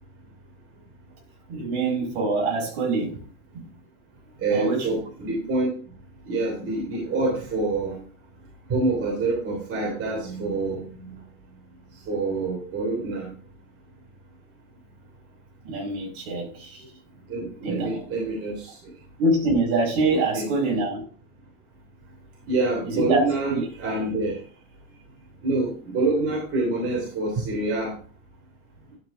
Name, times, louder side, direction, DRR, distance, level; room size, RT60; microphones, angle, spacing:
voice 1, 1.5-3.2 3.5-3.7 4.5-4.9 15.6-16.9 17.6-18.0 19.2-21.0 22.8-23.6, right 2 dB, 55° right, 0 dB, 5.1 m, -25 dB
voice 2, 4.4-5.7 6.3-8.0 8.7-11.1 12.1-13.3 17.3-18.7 20.1-20.4 22.5-24.4 25.4-27.9, right 3 dB, 30° right, -2 dB, 3.2 m, -26 dB
12.0 x 5.4 x 3.7 m, 0.41 s
supercardioid pair, 145°, 44 cm